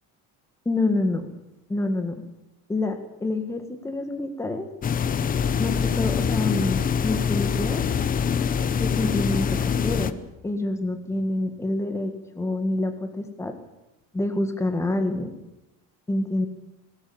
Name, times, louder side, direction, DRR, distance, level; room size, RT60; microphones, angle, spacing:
voice 1, 0.6-1.3 1.7-2.2 2.7-4.7 5.6-7.8 8.8-13.5 14.1-15.3 16.1-16.5, left 2 dB, 10° left, 7 dB, 1.6 m, -27 dB
sound 1, 4.8-10.1, left 7 dB, 25° left, 0.8 m, -24 dB
18.5 x 18.0 x 8.4 m, 0.92 s
cardioid pair, 175°, 34 cm